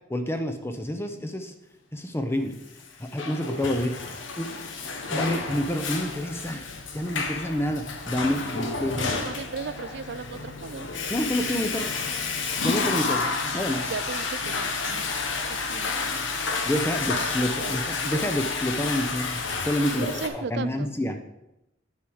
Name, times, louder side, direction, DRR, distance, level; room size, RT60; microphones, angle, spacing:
voice 1, 0.1-1.5 1.9-2.6 3.0-4.5 5.1-6.6 6.9-9.2 11.1-11.9 12.6-13.3 13.5-13.9 16.7-21.2, left 1 dB, 10° left, 6 dB, 0.6 m, -28 dB
Water / Toilet flush, 2.8-20.3, left 4 dB, 70° left, 1.0 m, -30 dB
voice 2, 9.0-10.9 13.9-14.7 15.5-16.1 17.3-17.8 19.9-20.9, right 5 dB, 60° right, 15 dB, 0.4 m, -36 dB
8.8 x 4.9 x 6.2 m, 0.90 s
head